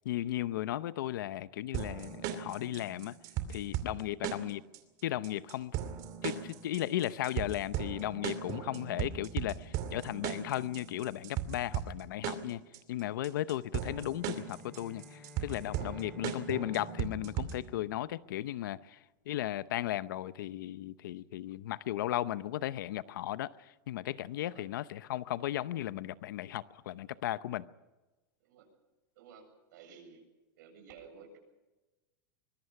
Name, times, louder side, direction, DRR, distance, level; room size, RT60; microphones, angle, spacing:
voice 1, 0.0-3.2 3.5-4.6 5.0-5.7 6.2-12.6 12.9-19.0 19.3-23.5 23.9-27.7, left 13 dB, 80° left, 0.8 m, -35 dB
sound 1, 1.7-17.7, right 10 dB, 40° right, 2.6 m, -38 dB
Bowed string instrument, 14.1-18.5, left 6 dB, 5° left, 2.4 m, -55 dB
voice 2, 15.8-16.1 24.4-24.7 28.4-28.7 29.2-29.5 29.7-30.2 30.6-31.4, right 6 dB, 70° right, 7.8 m, -54 dB
24.5 x 21.5 x 5.9 m
supercardioid pair, 165°, 11 cm